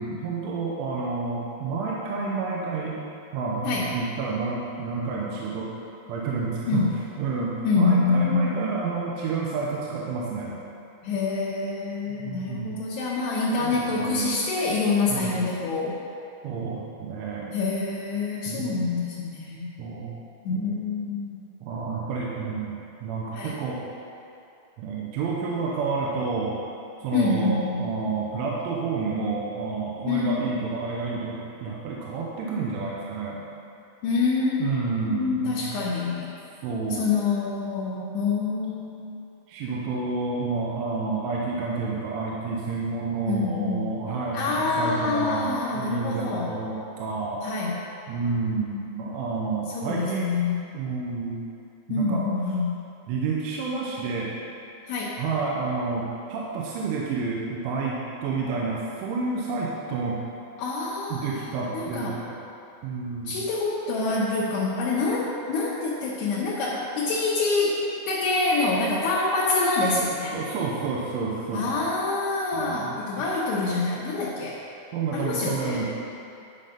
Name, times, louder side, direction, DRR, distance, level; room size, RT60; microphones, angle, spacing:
voice 1, 0.0-3.0 3.3-5.7 6.1-6.9 7.2-10.6 12.2-12.8 13.6-14.5 15.1-15.3 16.4-17.6 18.5-18.9 19.8-20.1 20.5-20.7 21.6-23.9 24.8-26.6 27.0-33.5 34.6-35.8 36.6-37.1 39.5-47.4 48.1-50.3 50.7-51.4 51.9-52.3 53.1-54.3 55.2-60.2 61.1-62.4 62.8-63.4 70.3-71.8 72.5-73.0 74.9-75.9, right 4 dB, 85° right, -4 dB, 3.3 m, -30 dB
voice 2, 7.6-8.6 11.0-16.0 17.5-19.7 20.4-21.4 23.3-23.6 27.1-27.9 30.1-30.5 34.0-34.8 35.1-36.3 36.9-39.2 43.2-43.9 44.3-46.5 47.4-47.8 49.7-50.7 51.9-52.8 54.9-55.1 60.6-61.5 61.7-62.2 63.3-67.8 68.1-70.4 71.5-74.6 75.1-75.8, left 3 dB, 75° left, -7 dB, 2.8 m, -26 dB
12.0 x 5.7 x 5.1 m, 2.6 s
omnidirectional pair, 5.5 m